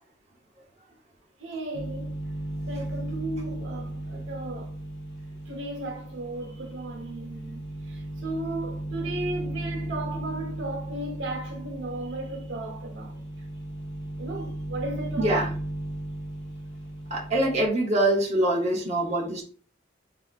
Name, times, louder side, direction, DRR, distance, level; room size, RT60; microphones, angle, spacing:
voice 1, 1.4-2.2 2.7-4.7 5.5-13.2 14.2-15.5, right 2 dB, 75° right, 1.0 m, -35 dB
sound 1, 1.7-17.7, right 1 dB, 65° left, 0.9 m, -36 dB
voice 2, 15.2-15.5 17.1-19.4, right 1 dB, 35° right, 0.9 m, -24 dB
4.3 x 2.8 x 2.4 m
head